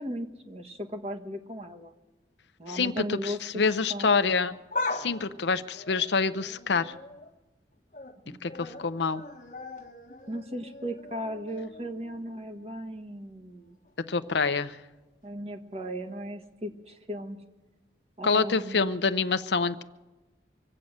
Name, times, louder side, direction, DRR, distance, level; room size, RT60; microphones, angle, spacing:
voice 1, 0.0-1.9 2.6-3.6 3.9-4.2 8.2-8.4 10.3-13.8 15.2-17.4 18.2-19.0, equal, 35° right, 4 dB, 1.4 m, -37 dB
voice 2, 2.7-4.5 4.9-6.9 8.4-9.2 14.1-14.8 18.2-19.8, left 4 dB, 75° left, 11 dB, 0.7 m, -26 dB
sound 1, 4.5-7.3 7.7-8.2 8.5-12.4 12.7-12.8 13.8-13.9, left 2 dB, 45° left, 1.2 m, -39 dB
25.0 x 8.7 x 6.5 m, 1.1 s
head